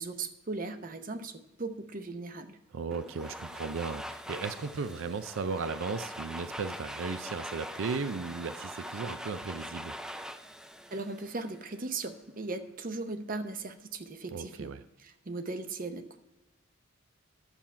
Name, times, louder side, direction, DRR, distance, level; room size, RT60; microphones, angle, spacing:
voice 1, 0.0-2.6 10.9-14.7 15.0-16.2, right 3 dB, 40° right, 9 dB, 0.7 m, -38 dB
voice 2, 2.7-10.0 14.3-14.8, right 4 dB, 70° right, 12 dB, 0.4 m, -36 dB
Domestic sounds home sounds, 2.9-11.8, equal, 5° right, 0.3 m, -43 dB
9.7 x 7.2 x 4.3 m, 1.0 s
head